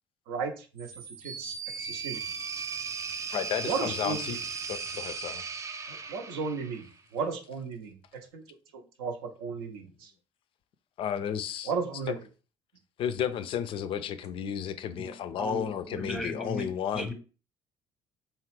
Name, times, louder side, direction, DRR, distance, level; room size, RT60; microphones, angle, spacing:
voice 1, 0.3-0.9 1.2-2.2 3.6-4.4 5.9-8.0 8.3-8.4 9.0-10.1 11.6-12.2, right 5 dB, 65° right, 0.6 m, -34 dB
sound 1, 0.8-7.0, right 5 dB, 25° right, 0.4 m, -37 dB
voice 2, 3.3-4.4 4.7-5.4 11.0-11.7 13.0-17.1, left 9 dB, 45° left, 0.4 m, -33 dB
voice 3, 15.4-16.7 16.9-17.1, equal, 5° right, 0.8 m, -35 dB
2.8 x 2.4 x 3.3 m
figure-of-eight pair, 50°, 13 cm